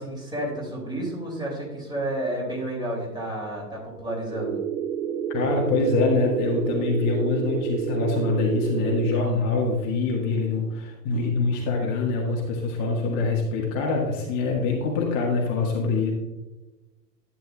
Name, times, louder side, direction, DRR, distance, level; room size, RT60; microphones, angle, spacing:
voice 1, 0.0-4.6, right 1 dB, 10° right, -2 dB, 2.8 m, -31 dB
sound 1, 4.3-9.2, right 9 dB, 70° right, 0.6 m, -29 dB
voice 2, 5.3-16.1, left 3 dB, 35° left, -2 dB, 1.8 m, -24 dB
11.5 x 9.1 x 2.4 m, 1.1 s
figure-of-eight pair, 105°, 50 cm